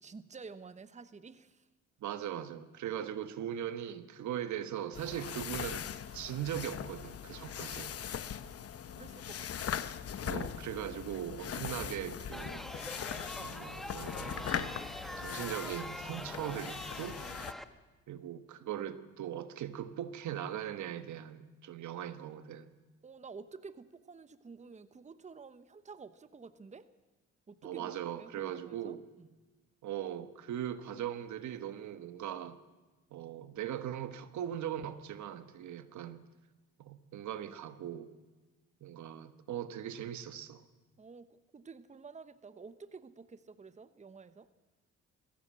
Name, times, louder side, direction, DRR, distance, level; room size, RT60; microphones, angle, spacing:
voice 1, 0.0-1.7 9.0-9.8 23.0-26.9 27.5-27.9 28.2-29.4 41.0-44.5, right 4 dB, 25° right, 1.0 m, -50 dB
voice 2, 2.0-5.9 6.1-8.0 10.2-12.7 13.4-14.8 15.2-17.2 18.1-22.7 27.6-29.1 29.8-32.6 33.1-36.2 36.8-38.1 38.8-40.6, right 10 dB, 70° right, 1.3 m, -40 dB
sound 1, 4.9-17.5, left 9 dB, 50° left, 1.0 m, -40 dB
Chatter, 12.3-17.6, equal, ahead, 1.3 m, -44 dB
21.5 x 16.0 x 7.6 m
cardioid pair, 90°, 30 cm